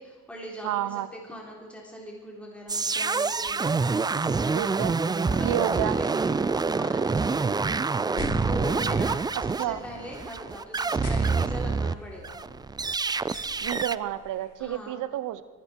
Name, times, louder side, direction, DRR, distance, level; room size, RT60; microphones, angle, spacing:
voice 1, 0.0-4.0 4.8-4.9 5.2-7.8 8.5-12.4 14.6-15.0, equal, 5° left, -2 dB, 3.7 m, -41 dB
voice 2, 0.6-1.1 4.5-4.9 5.4-6.0 9.6-9.8 13.6-15.4, right 13 dB, 85° right, 14 dB, 0.8 m, -30 dB
sound 1, 2.7-11.9 12.2-14.0, right 4 dB, 15° right, 0.3 m, -27 dB
sound 2, 8.0-14.6, left 1 dB, 55° left, 3.9 m, -42 dB
22.0 x 10.5 x 4.5 m, 1.5 s
cardioid pair, 90°, 30 cm